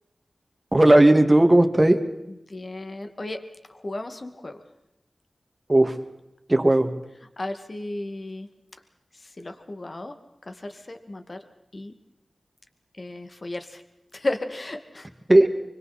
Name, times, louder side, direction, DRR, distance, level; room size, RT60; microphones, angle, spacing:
voice 1, 0.7-2.0 5.7-5.9 6.5-6.9 15.3-15.5, right 1 dB, 25° right, 6 dB, 2.2 m, -16 dB
voice 2, 2.3-3.4 3.7-4.6 7.4-8.5 9.1-10.1 10.4-11.4 11.7-11.9 12.9-13.8 14.1-15.1, left 2 dB, 45° left, 7 dB, 2.2 m, -34 dB
25.0 x 24.5 x 4.3 m, 0.91 s
wide cardioid pair, 65°, 0 cm